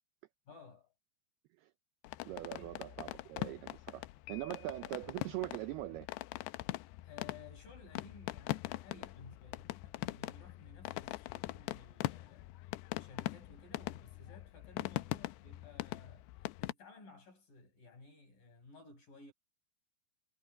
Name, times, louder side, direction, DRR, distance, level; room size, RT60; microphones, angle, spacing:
voice 1, 0.5-0.9 2.5-2.8 7.0-12.5 12.9-16.3 16.6-19.3, left 3 dB, 45° left, 9.0 m, -56 dB
sound 1, 2.0-16.7, left 18 dB, 90° left, 2.4 m, -42 dB
voice 2, 2.2-6.1, right 17 dB, 80° right, 2.3 m, -42 dB
Piano, 4.3-5.2, left 13 dB, 65° left, 1.9 m, -55 dB
omnidirectional pair, 5.4 m